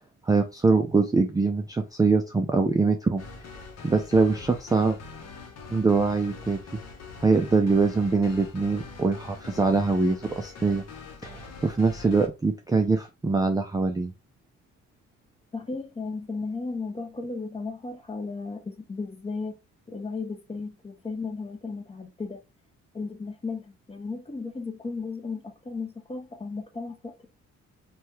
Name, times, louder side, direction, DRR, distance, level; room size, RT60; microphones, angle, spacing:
voice 1, 0.2-3.2 3.8-5.0 5.7-6.6 7.2-10.8 11.2-14.1, right 4 dB, 15° right, 0.4 m, -23 dB
sound 1, 3.2-12.3, left 4 dB, 60° left, 0.8 m, -43 dB
voice 2, 15.5-19.6 19.9-22.4 22.9-27.3, left 4 dB, 20° left, 0.8 m, -35 dB
2.7 x 2.3 x 3.2 m
cardioid pair, 90°, 30 cm